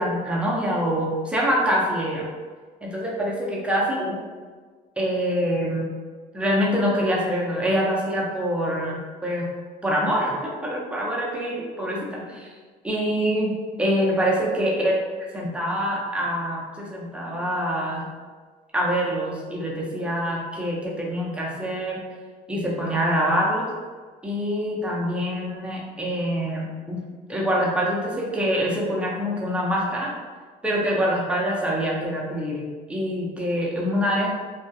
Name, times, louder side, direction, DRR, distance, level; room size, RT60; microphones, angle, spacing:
voice 1, 0.0-2.3 2.8-4.2 5.0-5.9 6.3-9.5 9.8-12.5 12.8-14.9 15.3-18.1 18.7-22.0 22.5-23.7 24.2-27.0 27.3-30.1 30.6-34.3, equal, 5° right, -4 dB, 0.5 m, -25 dB
2.3 x 2.1 x 2.6 m, 1.5 s
cardioid pair, 110°, 17 cm